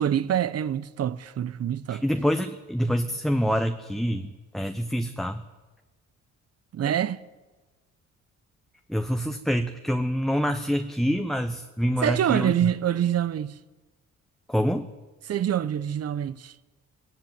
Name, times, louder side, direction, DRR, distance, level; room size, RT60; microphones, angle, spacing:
voice 1, 0.0-2.0 6.7-7.2 12.0-13.5 15.3-16.5, right 10 dB, 55° right, 0.9 m, -26 dB
voice 2, 1.9-5.4 8.9-12.7 14.5-14.9, equal, ahead, 1.0 m, -26 dB
18.0 x 17.5 x 9.5 m
cardioid pair, 90°, 30 cm